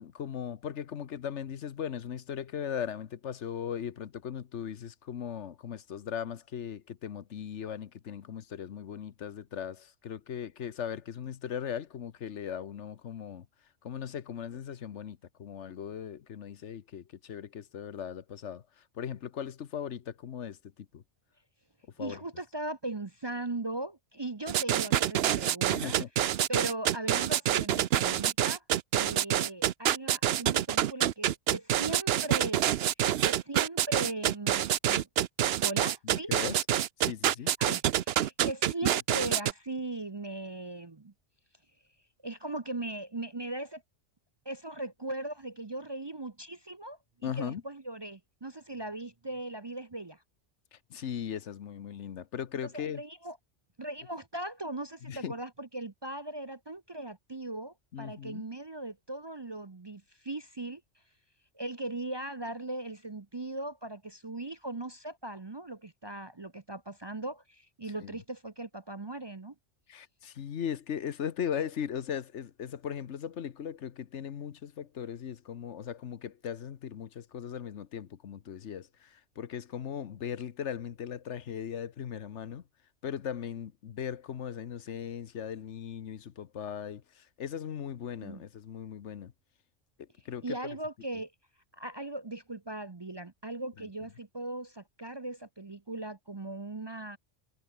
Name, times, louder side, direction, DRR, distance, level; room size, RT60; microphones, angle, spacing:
voice 1, 0.0-13.5 13.8-21.0 22.0-22.2 25.7-26.1 36.0-36.7 37.0-37.5 47.2-47.6 50.7-53.0 55.0-55.3 57.9-58.4 68.0-68.2 69.9-82.6 83.0-89.3 90.2-90.6 93.8-93.9, left 8 dB, 75° left, 1.3 m, -38 dB
voice 2, 22.0-26.0 26.5-28.6 28.9-32.7 33.2-35.1 35.6-36.3 37.6-41.1 42.2-43.8 44.4-50.2 52.6-53.4 53.8-60.8 61.5-69.5 88.2-88.4 90.4-91.3 91.7-97.2, right 2 dB, 25° right, 0.7 m, -39 dB
sound 1, 24.5-39.5, right 11 dB, 65° right, 0.8 m, -27 dB
omnidirectional pair, 1.2 m